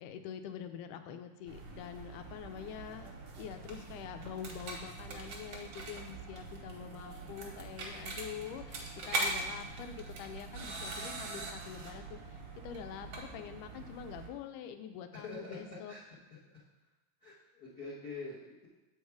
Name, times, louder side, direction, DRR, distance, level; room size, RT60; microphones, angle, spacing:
voice 1, 0.0-3.1 3.4-15.9, left 8 dB, 85° left, 8 dB, 2.1 m, -45 dB
sound 1, 1.5-14.3, right 2 dB, 60° right, 1.5 m, -42 dB
voice 2, 15.2-16.0 17.2-18.7, left 3 dB, 50° left, -7 dB, 1.1 m, -45 dB
7.3 x 4.8 x 4.7 m, 1.1 s
omnidirectional pair, 3.6 m